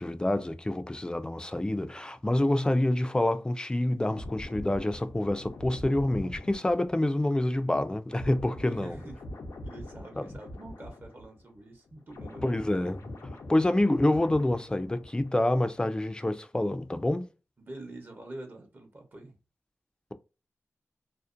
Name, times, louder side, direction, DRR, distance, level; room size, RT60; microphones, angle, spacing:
voice 1, 0.0-9.0 10.2-10.3 12.4-17.3, left 1 dB, 15° left, 0.4 m, -27 dB
sound 1, 4.1-11.6 11.9-15.6 15.9-16.1, left 1 dB, 90° left, 0.6 m, -44 dB
voice 2, 8.7-9.2 9.6-12.5 17.6-19.4, right 2 dB, 40° right, 0.8 m, -45 dB
2.5 x 2.1 x 2.4 m
cardioid pair, 60°, 5 cm